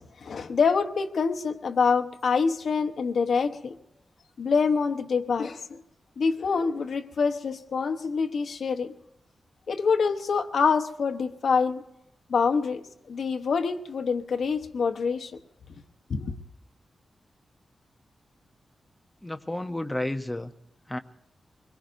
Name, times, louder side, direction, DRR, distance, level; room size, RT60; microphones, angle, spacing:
voice 1, 0.0-3.8 4.4-5.8 6.2-8.9 9.7-11.8 12.3-12.8 13.1-15.3 16.1-16.3, left 5 dB, 65° left, 6 dB, 0.9 m, -26 dB
voice 2, 19.2-20.5 20.9-21.0, left 1 dB, 10° left, 7 dB, 0.7 m, -31 dB
24.5 x 22.0 x 2.6 m, 0.88 s
wide cardioid pair, 175°, 0 cm